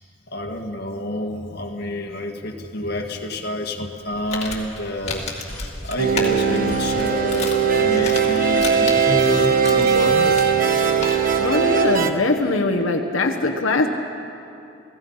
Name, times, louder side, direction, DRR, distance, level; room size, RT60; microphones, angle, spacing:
voice 1, 0.3-5.3 5.8-10.4, left 1 dB, 50° left, 2 dB, 1.7 m, -28 dB
Crumpling crinkling, 4.0-11.4, left 3 dB, 35° left, 2.5 m, -34 dB
sound 1, 5.5-7.8 8.1-10.0, left 1 dB, 10° left, 1.9 m, -40 dB
sound 2, 6.0-12.1, right 6 dB, 40° right, 1.2 m, -19 dB
voice 2, 11.4-13.9, left 2 dB, 80° left, 2 dB, 1.2 m, -21 dB
29.0 x 17.0 x 5.6 m, 2.7 s
head